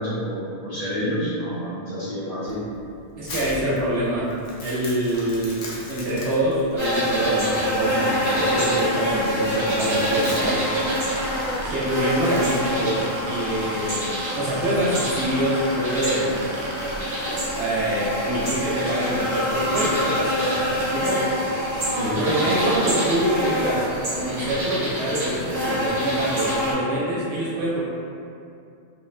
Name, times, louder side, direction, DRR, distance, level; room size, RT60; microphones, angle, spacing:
voice 1, 0.0-2.6 21.9-22.4, equal, 45° left, -10 dB, 0.5 m, -28 dB
Crumpling crinkling, 2.5-13.0, left 1 dB, 80° left, 0.8 m, -40 dB
voice 2, 3.2-4.4 4.6-10.6 11.6-16.5 17.5-21.2 22.2-23.9 24.1-27.8, right 1 dB, 85° right, -8 dB, 0.9 m, -25 dB
sound 1, 6.8-26.7, equal, 40° right, 0.9 m, -26 dB
sound 2, 10.5-13.8 14.1-16.9, right 3 dB, 60° right, 0.6 m, -38 dB
2.8 x 2.1 x 2.3 m, 2.5 s
omnidirectional pair, 1.1 m